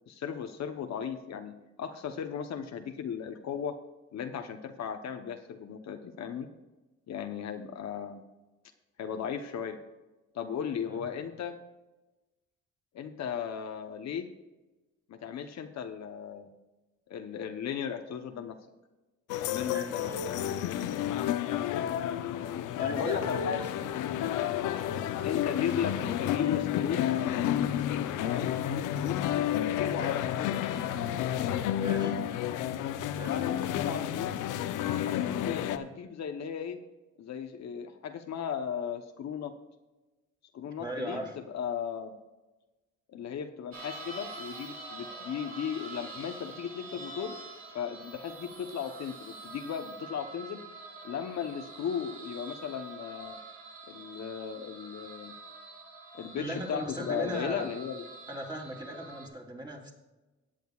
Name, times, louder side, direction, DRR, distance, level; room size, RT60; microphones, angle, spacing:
voice 1, 0.1-3.8 4.1-6.5 7.1-8.2 9.0-9.8 10.3-11.6 12.9-14.3 15.1-16.5 17.1-18.6 19.4-21.2 22.4-23.9 25.2-27.0 28.2-30.6 31.9-32.1 33.2-34.3 35.0-36.8 37.2-39.5 40.5-41.3 41.5-42.2 43.1-47.4 47.7-50.6 51.0-53.4 53.9-55.3 56.1-58.0, left 8 dB, 60° left, 6 dB, 0.9 m, -36 dB
sound 1, 19.3-35.8, left 11 dB, 85° left, 0.7 m, -31 dB
voice 2, 19.7-20.4 22.8-23.6 30.0-30.2 31.8-32.1 33.1-33.4 40.8-41.3 56.4-57.7 58.3-59.9, right 1 dB, 15° right, -1 dB, 3.2 m, -38 dB
sound 2, 43.7-59.3, right 3 dB, 50° right, 3.1 m, -46 dB
17.5 x 9.0 x 2.4 m, 1.1 s
cardioid pair, 90°, 30 cm